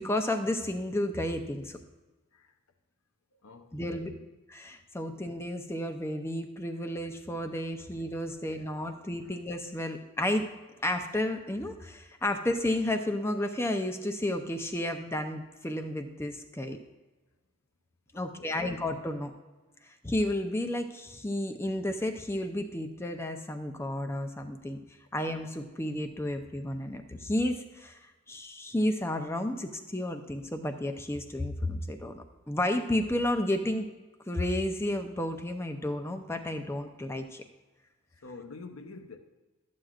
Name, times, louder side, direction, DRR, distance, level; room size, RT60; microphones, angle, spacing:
voice 1, 0.0-1.8 3.7-4.1 4.5-10.5 10.8-16.8 18.1-19.3 20.0-24.8 25.1-28.0 28.3-33.9 34.3-37.4, left 1 dB, 10° left, 0.5 m, -32 dB
voice 2, 3.3-4.2 6.8-6.9 8.7-8.9 9.2-9.4 9.8-10.0 18.1-18.6 38.2-39.2, left 3 dB, 75° left, 0.8 m, -48 dB
12.5 x 7.7 x 2.4 m
head